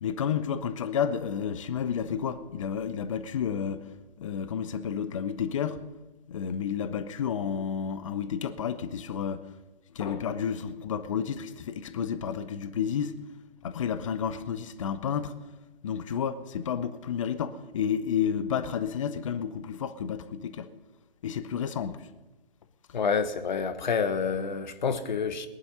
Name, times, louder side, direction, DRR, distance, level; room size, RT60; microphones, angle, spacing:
voice 1, 0.0-3.9 4.2-5.8 6.3-9.5 9.9-13.1 13.6-15.3 15.8-20.7 21.2-22.1, left 8 dB, 35° left, 0.9 m, -31 dB
voice 2, 22.9-25.5, left 6 dB, 50° left, 1.4 m, -28 dB
20.5 x 11.0 x 5.6 m
figure-of-eight pair, 140°, 30 cm